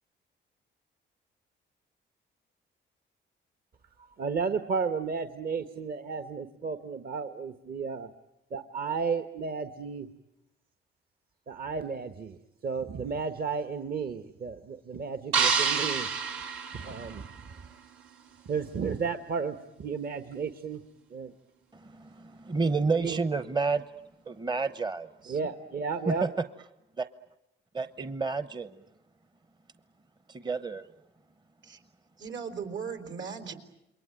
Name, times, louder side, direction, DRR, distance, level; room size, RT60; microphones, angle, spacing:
voice 1, 4.0-8.1 8.5-10.1 11.5-12.4 12.6-16.1 16.7-17.5 18.4-20.8 21.1-21.3 23.0-23.2 25.3-26.3, right 5 dB, 50° right, 9 dB, 1.4 m, -33 dB
sound 1, 15.3-17.6, right 6 dB, 90° right, 3.5 m, -28 dB
voice 2, 21.8-23.8 24.3-25.4 26.1-26.3 27.0-27.1 27.7-28.7 30.3-30.8, right 4 dB, 20° right, 12 dB, 0.9 m, -30 dB
voice 3, 32.2-33.5, right 6 dB, 70° right, 7 dB, 4.3 m, -37 dB
28.5 x 22.5 x 9.1 m, 0.89 s
cardioid pair, 90°, 20 cm